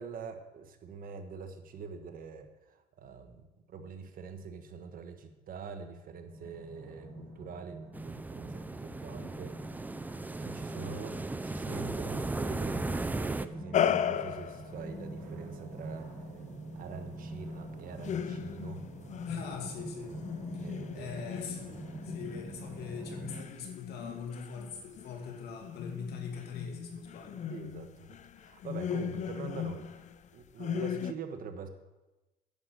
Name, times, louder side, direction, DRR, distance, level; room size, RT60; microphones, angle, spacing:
voice 1, 0.0-3.4 3.7-9.6 10.4-16.1 16.7-18.8 20.6-21.3 27.5-29.9 30.3-31.7, right 5 dB, 55° right, 7 dB, 1.3 m, -44 dB
sound 1, 6.3-23.4, right 1 dB, 80° right, 4.4 m, -45 dB
sound 2, 7.9-13.5, right 2 dB, 10° right, 0.5 m, -36 dB
sound 3, 13.7-14.8 18.0-19.8 20.2-30.2 30.6-31.1, left 8 dB, 45° left, 0.5 m, -36 dB
voice 2, 19.2-20.2 20.9-27.5, left 5 dB, 75° left, 2 dB, 2.4 m, -42 dB
10.5 x 6.8 x 7.7 m, 1.1 s
cardioid pair, 110°, 17 cm